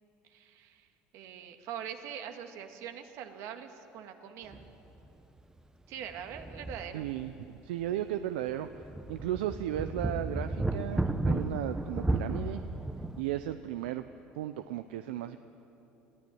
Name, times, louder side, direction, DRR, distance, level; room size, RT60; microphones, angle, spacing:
voice 1, 0.2-0.9 1.1-4.6 5.9-7.1, right 9 dB, 65° right, 6 dB, 1.9 m, -43 dB
sound 1, 4.5-4.7 5.0-5.1 6.0-7.5 7.8-7.9 8.5-13.2, right 2 dB, 10° right, 1.0 m, -34 dB
voice 2, 6.9-8.7 9.1-12.6 13.2-14.0 14.4-15.4, right 12 dB, 85° right, 10 dB, 0.6 m, -35 dB
20.5 x 14.5 x 9.3 m, 2.9 s
supercardioid pair, 85°, 5 cm